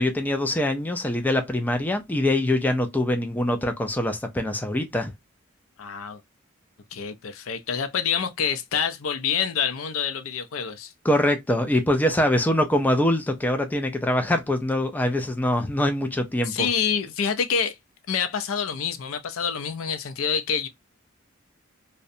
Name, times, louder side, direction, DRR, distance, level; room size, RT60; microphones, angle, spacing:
voice 1, 0.0-5.1 11.0-16.7, left 1 dB, 10° left, 0.3 m, -23 dB
voice 2, 5.8-6.2 6.9-10.9 16.5-17.8 18.1-20.7, left 7 dB, 80° left, 0.4 m, -27 dB
2.6 x 2.1 x 2.5 m
head